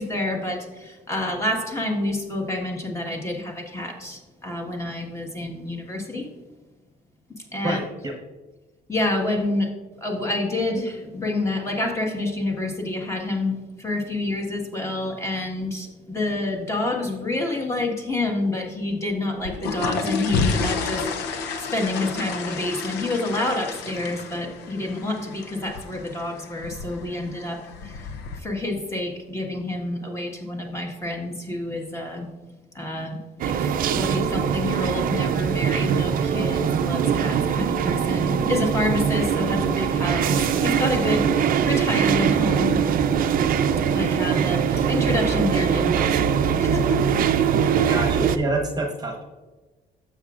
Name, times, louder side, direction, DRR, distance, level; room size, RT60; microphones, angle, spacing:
voice 1, 0.0-6.3 7.4-7.8 8.9-9.7 10.0-32.3 32.7-42.8 43.9-48.0, left 2 dB, 15° left, 1 dB, 1.5 m, -28 dB
voice 2, 7.6-8.1 47.9-49.2, right 2 dB, 25° right, 2 dB, 1.1 m, -27 dB
sound 1, 19.3-28.4, left 4 dB, 85° left, 0.8 m, -30 dB
sound 2, 33.4-48.4, right 7 dB, 55° right, 0.6 m, -22 dB
12.0 x 7.2 x 2.5 m, 1.2 s
cardioid pair, 110°, 17 cm